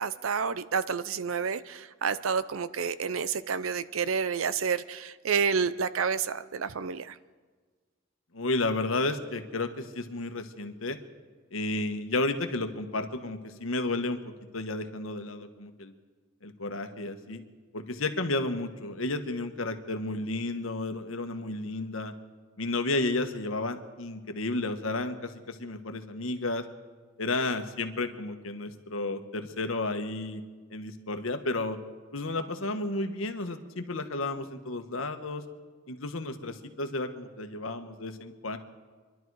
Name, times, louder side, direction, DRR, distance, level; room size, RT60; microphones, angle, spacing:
voice 1, 0.0-7.1, right 6 dB, 85° right, 15 dB, 0.6 m, -29 dB
voice 2, 8.3-11.0 11.5-14.2 14.5-15.9 16.4-17.4 17.7-22.1 22.6-26.6 27.2-30.4 30.7-31.8 32.1-35.4 35.9-38.6, left 2 dB, 80° left, 7 dB, 1.2 m, -32 dB
26.5 x 11.5 x 4.7 m, 1.5 s
head